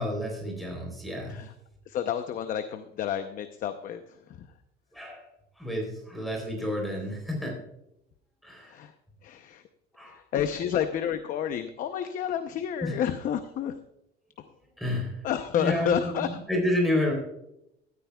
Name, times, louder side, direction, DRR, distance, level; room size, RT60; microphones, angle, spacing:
voice 1, 0.0-1.4 4.9-5.2 5.6-7.6 8.4-8.8 9.9-10.2 12.8-13.0 14.8-15.2 15.5-17.1, left 1 dB, ahead, -1 dB, 3.6 m, -30 dB
voice 2, 1.9-4.0 8.7-8.9 9.2-9.6 10.3-13.7 15.2-16.3, left 9 dB, 45° left, 9 dB, 0.7 m, -29 dB
14.0 x 13.0 x 2.3 m, 0.82 s
cardioid pair, 155°, 19 cm